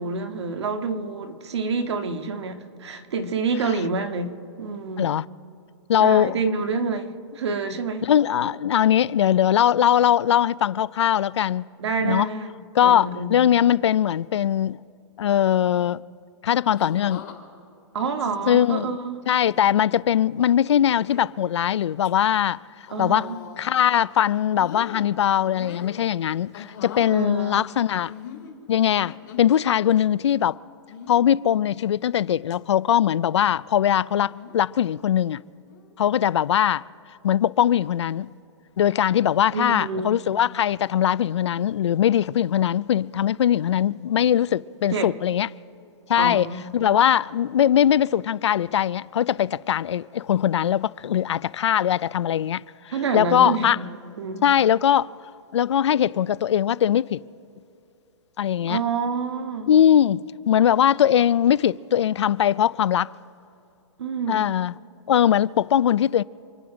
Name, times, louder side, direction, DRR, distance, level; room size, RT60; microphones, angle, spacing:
voice 1, 0.0-5.1 6.0-8.1 11.8-12.5 12.8-13.4 17.9-19.2 22.9-23.4 27.1-27.6 39.5-40.2 44.9-45.1 46.2-46.7 52.9-53.9 54.2-54.6 58.7-59.7 64.0-64.4, right 4 dB, 65° right, 1.7 m, -28 dB
voice 2, 5.9-6.4 8.0-11.7 12.0-12.3 12.7-14.8 15.2-16.0 16.4-17.2 18.5-18.9 19.3-23.3 23.6-28.1 28.7-30.6 31.1-35.4 36.0-36.8 37.1-38.3 38.8-45.5 46.1-46.5 46.7-53.8 54.4-55.1 55.5-57.2 58.4-58.8 59.7-63.1 64.3-64.7 65.1-66.2, left 10 dB, 70° left, 0.4 m, -21 dB
sound 1, 16.7-17.4 18.3-18.9 19.4-19.7 20.7-21.3 21.8-22.1 22.8-23.8 24.1-25.1 25.5-26.0 26.5-27.1 28.1-29.6 30.9-31.3 31.9-32.2 32.5-32.6 34.2-34.6 35.7-35.9, left 8 dB, 40° left, 2.8 m, -41 dB
28.0 x 9.5 x 4.9 m
hypercardioid pair, 175°, 15 cm